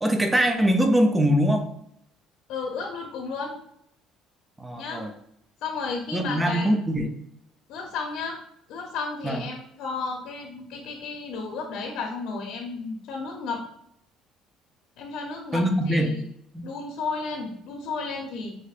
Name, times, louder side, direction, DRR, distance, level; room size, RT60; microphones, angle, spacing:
voice 1, 0.0-1.7 4.6-5.1 6.1-7.1 9.2-9.4 15.5-16.1 16.5-16.6, equal, 10° right, 5 dB, 0.6 m, -22 dB
voice 2, 2.5-3.6 4.7-5.0 5.6-6.7 7.7-8.4 8.7-13.6 15.0-16.2 16.6-18.5, left 4 dB, 65° left, 1 dB, 0.8 m, -33 dB
6.4 x 2.8 x 2.5 m, 0.75 s
cardioid pair, 140°, 0 cm